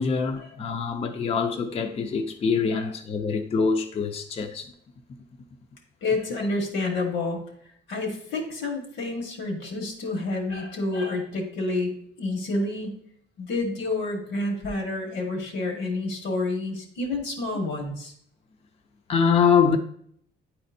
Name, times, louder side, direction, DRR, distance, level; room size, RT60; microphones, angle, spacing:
voice 1, 0.0-4.7 6.3-6.4 19.1-19.8, left 6 dB, 35° left, 0.5 m, -24 dB
voice 2, 6.0-7.4 7.9-11.9 12.2-12.9 13.4-18.1, left 2 dB, 85° left, 1.6 m, -29 dB
9.4 x 4.3 x 2.6 m
cardioid pair, 130°, 19 cm